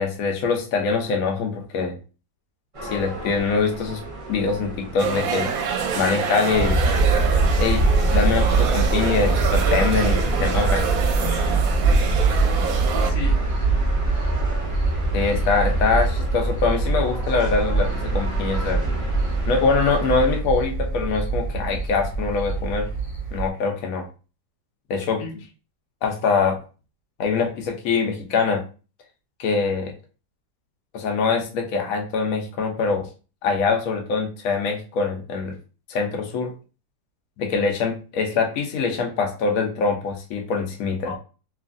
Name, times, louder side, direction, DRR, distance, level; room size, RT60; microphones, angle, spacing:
voice 1, 0.0-1.9 2.9-4.0 4.3-5.5 5.9-6.8 7.6-10.9 15.1-18.8 19.5-22.9 23.3-24.0 24.9-25.2 26.0-26.6 27.2-28.6 29.4-29.9 30.9-33.1 33.4-35.6 35.9-36.5 37.4-41.1, left 4 dB, 65° left, 3 dB, 1.0 m, -23 dB
sound 1, 2.7-20.4, right 1 dB, 55° right, 0.3 m, -35 dB
sound 2, 5.0-13.1, right 6 dB, 70° right, 0.9 m, -27 dB
sound 3, 6.5-23.5, right 3 dB, 40° left, 0.8 m, -23 dB
voice 2, 11.2-11.6 12.2-12.7 13.0-13.4 25.2-25.4 41.0-41.2, left 4 dB, 90° left, 4 dB, 1.2 m, -35 dB
2.9 x 2.5 x 2.5 m, 0.34 s
omnidirectional pair, 1.7 m